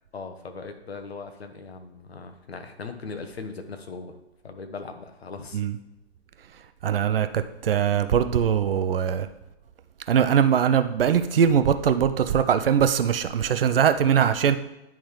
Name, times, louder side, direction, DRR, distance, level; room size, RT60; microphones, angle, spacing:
voice 1, 0.1-4.1 4.4-5.6, left 4 dB, 75° left, 7 dB, 1.1 m, -39 dB
voice 2, 6.8-9.3 10.1-14.6, right 8 dB, 65° right, 10 dB, 0.6 m, -21 dB
10.5 x 3.6 x 3.1 m, 0.91 s
figure-of-eight pair, 130°, 31 cm